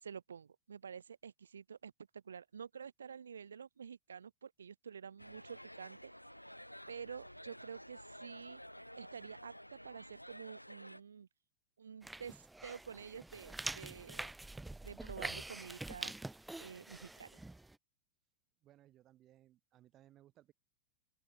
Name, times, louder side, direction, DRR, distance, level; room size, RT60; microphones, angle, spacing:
voice 1, 0.0-6.1 6.9-8.6 8.9-11.3 11.8-14.3 14.8-16.1 16.6-17.4, right 7 dB, 70° right, 2.0 m, -49 dB
sound 1, 5.2-11.0, equal, 90° left, 1.3 m, -52 dB
sound 2, 12.0-17.7, right 2 dB, 5° right, 1.4 m, -45 dB
voice 2, 18.6-20.5, right 13 dB, 35° right, 4.5 m, -64 dB
open air
figure-of-eight pair, 90°, 0 cm